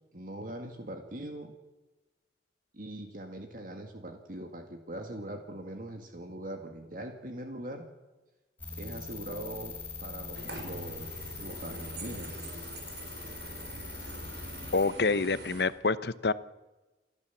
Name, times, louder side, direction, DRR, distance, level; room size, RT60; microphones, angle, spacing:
voice 1, 0.1-1.5 2.7-7.9 8.8-12.4, right 1 dB, 50° right, 4 dB, 2.0 m, -41 dB
sound 1, 8.6-14.8, left 4 dB, 10° left, 4.7 m, -42 dB
sound 2, 10.3-15.6, right 2 dB, 80° right, 5.0 m, -44 dB
voice 2, 14.7-16.3, left 3 dB, 65° left, 15 dB, 0.8 m, -27 dB
29.5 x 13.0 x 7.3 m, 1.1 s
head